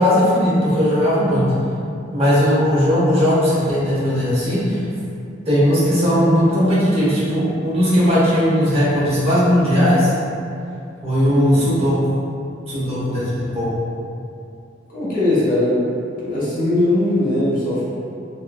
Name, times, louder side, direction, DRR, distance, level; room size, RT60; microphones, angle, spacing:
voice 1, 0.0-1.4 2.1-4.8 5.5-10.1 11.0-12.0 12.7-13.7, equal, 35° right, -10 dB, 0.8 m, -17 dB
voice 2, 11.3-11.6 14.9-15.8 16.2-17.9, left 1 dB, 50° left, -9 dB, 0.8 m, -20 dB
2.9 x 2.4 x 2.3 m, 2.5 s
head